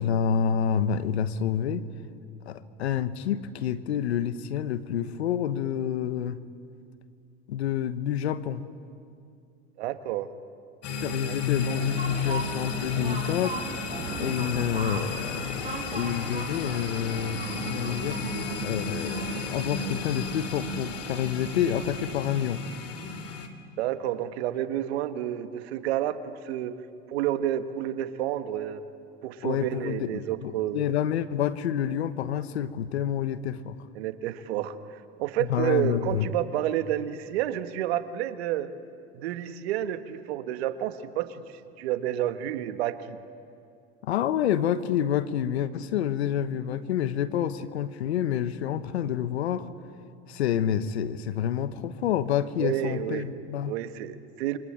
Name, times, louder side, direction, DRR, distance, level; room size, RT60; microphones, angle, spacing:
voice 1, 0.0-1.8 2.5-6.4 7.5-8.6 11.0-13.6 14.2-17.4 17.7-18.2 18.6-22.6 29.4-33.8 35.4-36.3 44.0-49.7 50.3-53.7, left 9 dB, 90° left, 13 dB, 1.3 m, -28 dB
voice 2, 9.8-10.3 11.2-11.4 23.8-26.7 27.1-28.8 29.2-30.8 33.9-38.7 39.1-43.2 52.6-53.3 53.7-54.6, right 12 dB, 75° right, 10 dB, 1.6 m, -30 dB
sound 1, 10.8-23.5, left 6 dB, 50° left, 2.6 m, -33 dB
sound 2, 11.6-22.3, right 4 dB, 20° right, 7.5 m, -38 dB
28.0 x 24.0 x 8.7 m, 2.4 s
hypercardioid pair, 95°, 32 cm